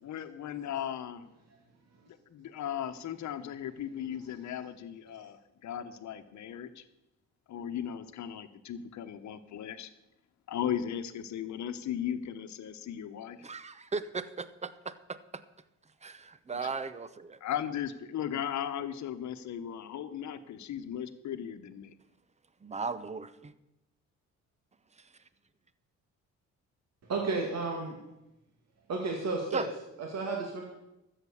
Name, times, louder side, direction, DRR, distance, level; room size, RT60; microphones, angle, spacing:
voice 1, 0.0-1.3 2.1-6.8 7.5-9.9 10.5-13.4 17.4-21.9, left 9 dB, 70° left, 10 dB, 1.1 m, -37 dB
voice 2, 13.4-15.2 16.0-17.4 22.6-23.5 25.0-25.1 29.5-29.7, right 4 dB, 20° right, 14 dB, 0.8 m, -37 dB
voice 3, 27.1-28.0 28.9-29.6 30.0-30.6, right 3 dB, 60° right, 1 dB, 2.2 m, -32 dB
13.0 x 7.7 x 7.1 m, 0.91 s
cardioid pair, 90°, 30 cm